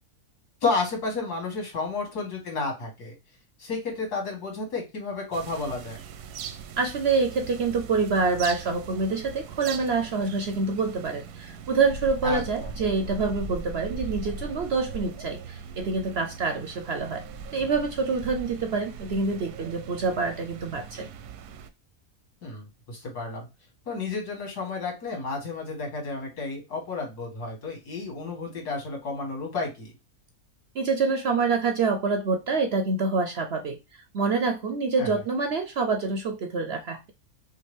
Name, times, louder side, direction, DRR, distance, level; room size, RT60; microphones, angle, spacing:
voice 1, 0.6-3.1 3.6-6.0 12.2-12.7 22.4-23.5 23.9-29.9 35.0-35.2, left 3 dB, 90° left, 2.5 m, -31 dB
sound 1, 5.3-21.7, right 6 dB, 90° right, 1.2 m, -40 dB
voice 2, 6.8-17.2 17.5-21.1 30.7-37.1, right 4 dB, 60° right, 0.7 m, -26 dB
5.7 x 2.5 x 3.2 m
omnidirectional pair, 1.6 m